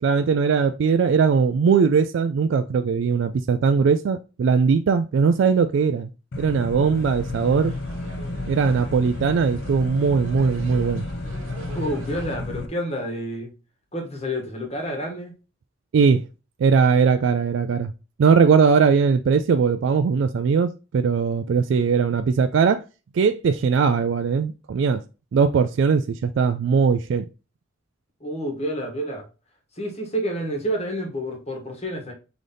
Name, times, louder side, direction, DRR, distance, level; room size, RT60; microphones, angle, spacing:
voice 1, 0.0-6.1 6.4-7.7 8.4-11.0 15.9-16.2 16.6-17.9 18.2-22.8 23.1-25.0 25.3-27.2, right 5 dB, 65° right, 0.3 m, -20 dB
sound 1, 6.3-12.7, left 2 dB, 55° left, 0.6 m, -32 dB
sound 2, 6.9-12.4, right 2 dB, 85° right, 1.0 m, -43 dB
voice 2, 11.7-13.5 13.9-15.3 28.2-29.2 29.8-32.1, equal, 30° left, 1.3 m, -29 dB
4.0 x 3.4 x 3.7 m
head